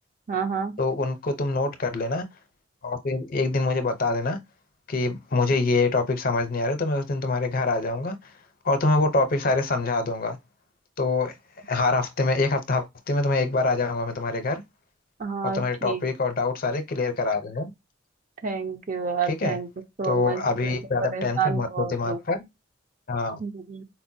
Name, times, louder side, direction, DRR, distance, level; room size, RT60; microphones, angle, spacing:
voice 1, 0.3-0.7 15.2-16.1 18.4-19.7 20.0-22.2 23.4-23.8, right 5 dB, 45° right, 0.6 m, -29 dB
voice 2, 0.8-2.2 2.8-4.4 4.9-8.3 8.6-10.4 11.0-11.4 11.7-14.6 15.5-17.7 19.3-19.6 20.1-22.4 23.1-23.4, left 3 dB, 50° left, 0.7 m, -25 dB
4.2 x 2.1 x 2.6 m
head